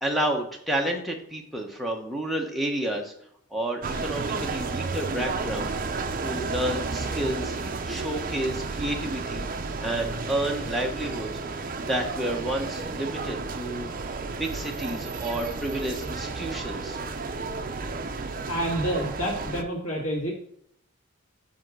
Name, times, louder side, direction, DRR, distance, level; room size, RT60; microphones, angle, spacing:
voice 1, 0.0-3.1 3.5-5.7 6.2-7.6 7.9-9.5 9.8-11.3 11.8-13.9 14.4-17.0, right 1 dB, ahead, 1 dB, 1.0 m, -30 dB
sound 1, 3.8-19.6, right 3 dB, 40° right, 0.5 m, -32 dB
voice 2, 18.5-20.3, equal, 80° left, -3 dB, 2.1 m, -28 dB
5.5 x 5.2 x 6.1 m, 0.71 s
head